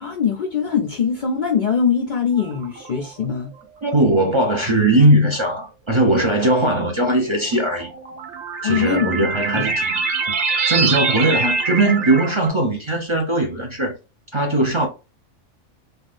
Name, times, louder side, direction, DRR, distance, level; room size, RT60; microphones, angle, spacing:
voice 1, 0.0-3.5 8.6-9.2 9.5-9.6, left 6 dB, 60° left, 0.5 m, -22 dB
sound 1, 2.4-3.0 3.9-4.0 5.2-5.3 7.4-12.5, right 4 dB, 75° right, 1.0 m, -24 dB
voice 2, 3.8-7.9 8.6-10.0 10.7-13.9 14.3-14.9, right 1 dB, 35° right, 0.5 m, -19 dB
3.4 x 2.4 x 2.5 m
omnidirectional pair, 1.2 m